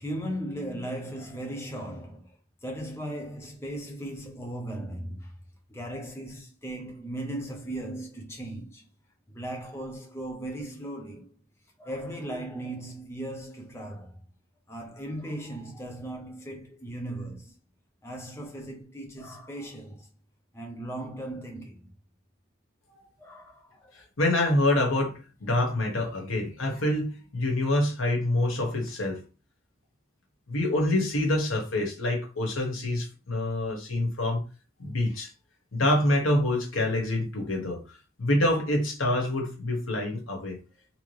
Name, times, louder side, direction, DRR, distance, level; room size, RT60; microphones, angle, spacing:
voice 1, 0.0-2.4 2.6-5.4 5.7-8.9 9.3-11.4 11.8-14.2 14.7-17.6 18.0-20.1 20.5-21.9 23.2-23.9, right 1 dB, 15° left, 0.6 m, -37 dB
voice 2, 24.2-29.2 30.5-34.4 34.8-35.3 35.7-40.6, left 1 dB, 85° left, 1.3 m, -26 dB
3.4 x 2.9 x 3.3 m
head